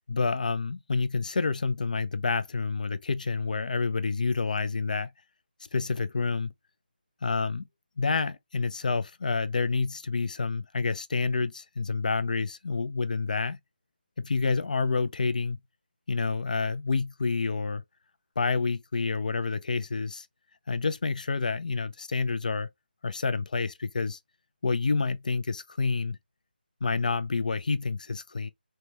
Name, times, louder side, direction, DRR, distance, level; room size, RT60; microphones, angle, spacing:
voice 1, 0.1-5.1 5.7-6.5 7.2-7.7 8.0-13.6 14.2-15.6 16.1-17.8 18.4-20.3 20.7-22.7 23.0-24.2 24.6-26.2 26.8-28.5, left 4 dB, 50° left, 0.4 m, -28 dB
3.4 x 2.1 x 2.8 m
figure-of-eight pair, 160°, 5 cm